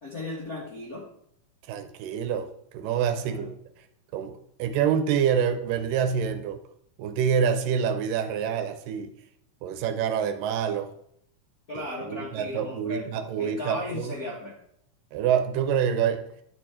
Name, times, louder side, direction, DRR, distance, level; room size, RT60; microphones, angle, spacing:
voice 1, 0.0-1.1 3.2-3.5 11.7-14.5, left 1 dB, 55° left, -5 dB, 1.0 m, -36 dB
voice 2, 1.7-2.5 2.7-3.6 4.1-6.6 7.0-9.1 9.6-10.9 12.0-14.1 15.1-16.2, right 8 dB, 80° right, 9 dB, 2.2 m, -26 dB
10.5 x 4.5 x 4.3 m, 0.72 s
omnidirectional pair, 4.1 m